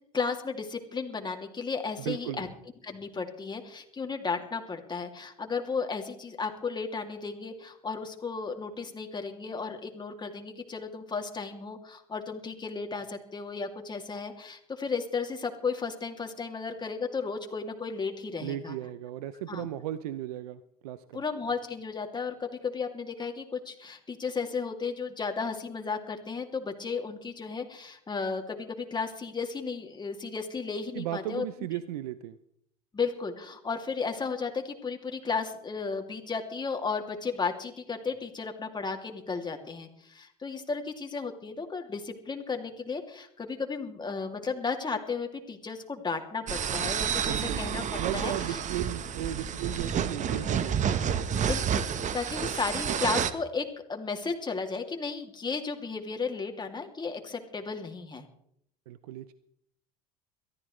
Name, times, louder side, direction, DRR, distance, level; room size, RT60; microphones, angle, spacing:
voice 1, 0.1-2.5 2.8-18.8 19.5-19.7 21.1-31.4 32.9-48.6 51.5-58.2, left 5 dB, 25° left, 4 dB, 2.7 m, -34 dB
voice 2, 2.1-2.5 18.4-21.2 30.9-32.4 47.3-47.7 47.9-51.1 58.9-59.3, right 12 dB, 85° right, 14 dB, 0.7 m, -36 dB
sound 1, 46.5-53.3, right 8 dB, 40° right, 1.2 m, -30 dB
22.5 x 14.0 x 3.3 m, 0.71 s
hypercardioid pair, 85°, 19 cm